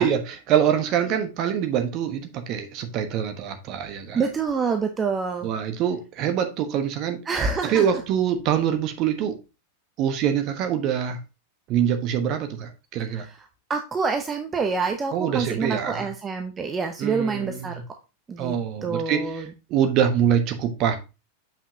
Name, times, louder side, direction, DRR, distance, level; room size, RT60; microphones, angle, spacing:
voice 1, 0.0-4.3 5.4-7.2 7.6-9.4 10.0-11.2 11.7-13.3 15.1-16.1 17.0-17.8 18.4-21.0, right 9 dB, 40° right, 1.1 m, -24 dB
voice 2, 4.1-5.5 7.3-7.8 13.7-17.8 18.3-18.6 18.8-19.5, right 5 dB, 20° right, 0.7 m, -26 dB
7.3 x 5.7 x 2.8 m
figure-of-eight pair, 90°, 0 cm